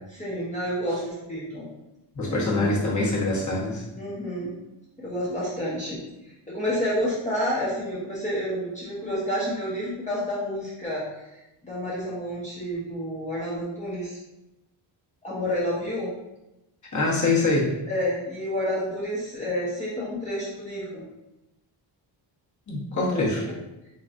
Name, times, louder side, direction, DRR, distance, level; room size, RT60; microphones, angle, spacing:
voice 1, 0.1-1.7 2.3-2.8 4.0-4.5 5.0-14.2 15.2-16.1 17.9-21.0 22.9-23.6, equal, 15° left, -8 dB, 0.9 m, -30 dB
voice 2, 2.1-3.8 16.9-17.7 22.7-23.4, left 2 dB, 35° left, -4 dB, 1.3 m, -24 dB
4.2 x 3.0 x 2.5 m, 0.94 s
cardioid pair, 90°, 50 cm